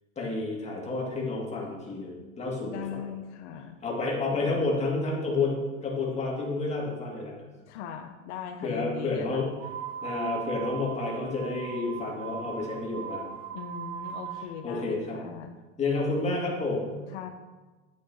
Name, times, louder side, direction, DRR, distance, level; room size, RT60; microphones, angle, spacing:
voice 1, 0.2-3.1 3.8-7.3 8.6-9.5 10.0-13.2 14.6-15.2 15.8-17.0, left 3 dB, 20° left, -2 dB, 2.0 m, -30 dB
voice 2, 2.6-3.8 7.7-9.5 13.5-15.6 17.1-17.3, left 8 dB, 70° left, 5 dB, 0.8 m, -39 dB
sound 1, 9.5-14.5, right 8 dB, 70° right, 1.3 m, -39 dB
8.8 x 8.6 x 2.7 m, 1.2 s
supercardioid pair, 135°, 37 cm